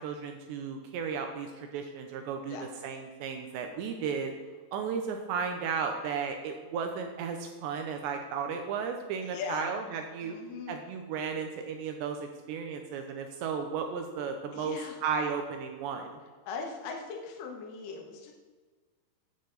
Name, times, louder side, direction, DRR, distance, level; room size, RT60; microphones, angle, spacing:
voice 1, 0.0-2.6 2.8-4.3 4.7-10.4 10.7-16.2, right 6 dB, 80° right, 4 dB, 2.9 m, -34 dB
voice 2, 9.2-9.7 10.2-10.8 14.5-15.0 16.5-18.3, left 5 dB, 60° left, 1 dB, 2.6 m, -39 dB
15.5 x 9.6 x 4.0 m, 1.4 s
omnidirectional pair, 5.4 m